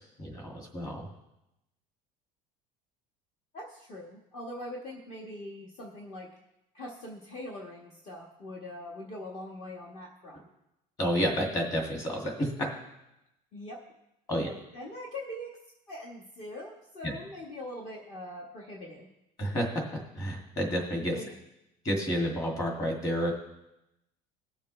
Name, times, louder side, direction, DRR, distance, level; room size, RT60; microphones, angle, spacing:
voice 1, 0.2-1.0 11.0-12.5 14.3-14.5 17.0-17.1 19.4-19.7 20.2-21.2 21.8-23.3, equal, 20° left, 0 dB, 2.2 m, -30 dB
voice 2, 3.5-6.3 6.7-10.4 13.5-13.8 14.3-15.6 15.9-19.1 21.1-21.4, left 1 dB, 35° left, -2 dB, 1.4 m, -42 dB
20.5 x 7.1 x 3.2 m, 0.88 s
cardioid pair, 180°, 17 cm